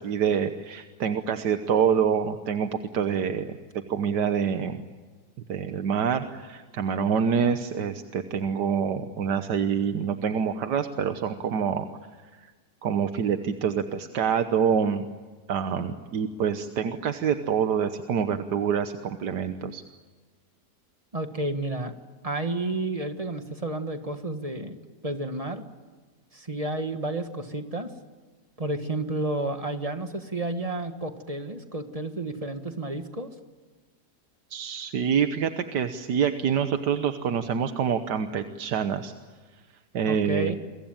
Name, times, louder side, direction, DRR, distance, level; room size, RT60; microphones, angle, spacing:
voice 1, 0.0-2.7 2.9-3.6 3.9-4.8 5.5-11.9 12.8-15.0 15.5-19.8 34.5-39.1 39.9-40.6, right 7 dB, 85° right, 8 dB, 1.7 m, -26 dB
voice 2, 21.1-21.9 22.2-24.8 25.0-25.6 26.3-27.9 28.6-33.3 40.1-40.6, right 2 dB, 20° right, 7 dB, 1.6 m, -31 dB
29.5 x 22.5 x 9.0 m, 1.4 s
omnidirectional pair, 1.8 m